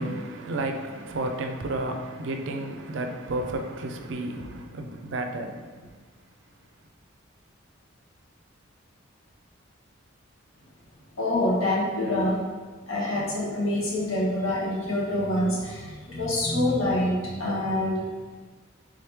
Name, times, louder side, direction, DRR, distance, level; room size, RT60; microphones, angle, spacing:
voice 1, 0.0-5.9, right 2 dB, 65° right, 0.4 m, -32 dB
voice 2, 11.2-12.4 12.9-18.0, left 1 dB, 90° left, 1.1 m, -26 dB
3.7 x 3.3 x 3.1 m
head